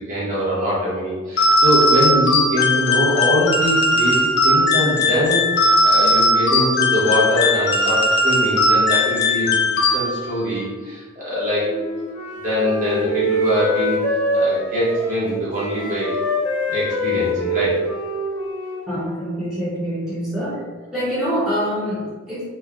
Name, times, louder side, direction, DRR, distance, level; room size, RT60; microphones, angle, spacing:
voice 1, 0.1-9.6 9.8-11.7 12.4-14.0 14.3-16.2 16.7-17.8, equal, 35° right, -8 dB, 0.9 m, -22 dB
sound 1, 1.4-10.4, left 1 dB, 50° left, 0.3 m, -18 dB
Wind instrument woodwind instrument, 11.6-19.4, equal, 85° left, 0.7 m, -24 dB
voice 2, 18.9-20.6 20.9-22.4, equal, 5° right, -12 dB, 0.6 m, -25 dB
3.1 x 2.0 x 2.3 m, 1.4 s
head